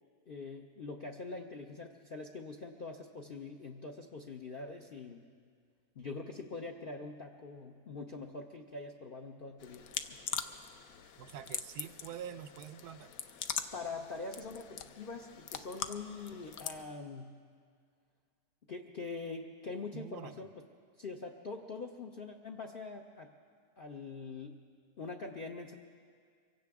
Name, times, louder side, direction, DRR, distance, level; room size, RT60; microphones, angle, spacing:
voice 1, 0.3-5.3 6.0-10.2 13.7-17.4 18.7-20.6 21.0-23.3 23.8-24.7 25.0-25.7, left 3 dB, 50° left, 2 dB, 0.6 m, -44 dB
sound 1, 9.6-16.8, left 8 dB, 70° left, 1.0 m, -42 dB
voice 2, 11.2-13.1 19.9-20.3, right 9 dB, 80° right, 12 dB, 1.1 m, -46 dB
24.0 x 16.5 x 3.6 m, 2.1 s
omnidirectional pair, 1.7 m